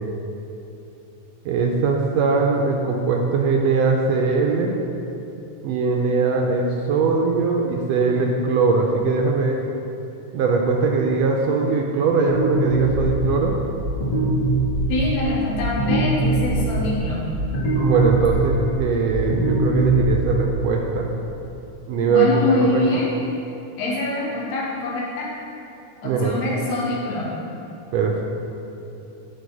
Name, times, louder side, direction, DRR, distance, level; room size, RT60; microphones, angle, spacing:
voice 1, 1.4-4.8 5.6-9.6 10.3-13.5 17.8-21.1 21.9-22.3 22.6-22.8 26.0-26.4 27.9-28.2, right 4 dB, 80° right, 1 dB, 1.5 m, -21 dB
sound 1, 12.3-20.6, right 2 dB, 50° left, 2.8 m, -23 dB
voice 2, 14.9-17.2 22.1-23.1 23.8-25.3 26.0-27.4, left 2 dB, 70° left, -5 dB, 2.5 m, -24 dB
10.5 x 3.8 x 4.8 m, 2.9 s
omnidirectional pair, 3.4 m